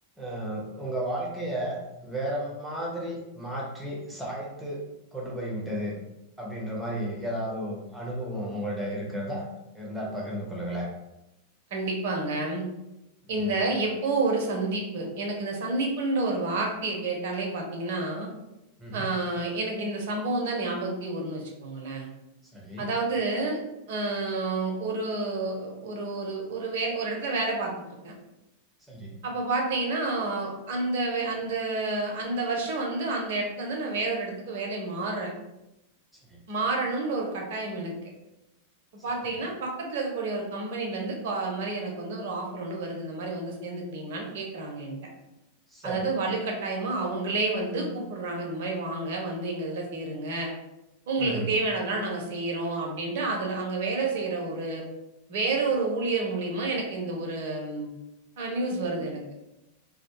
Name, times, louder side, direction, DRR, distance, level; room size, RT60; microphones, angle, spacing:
voice 1, 0.2-4.8 5.1-6.0 6.4-9.4 9.7-10.9 13.4-13.6 18.8-19.1 22.5-22.9 28.9-29.1 45.7-46.0 51.2-51.5, right 1 dB, 5° right, -3 dB, 0.7 m, -33 dB
voice 2, 11.7-12.7 13.3-18.3 18.9-22.1 22.8-23.6 23.9-27.7 28.0-28.1 29.2-35.3 36.5-37.9 39.0-45.0 45.8-50.5 51.1-54.8 55.3-57.9 58.4-59.2, right 3 dB, 55° right, 0 dB, 0.6 m, -29 dB
2.2 x 2.1 x 2.9 m, 0.92 s
figure-of-eight pair, 90°, 0 cm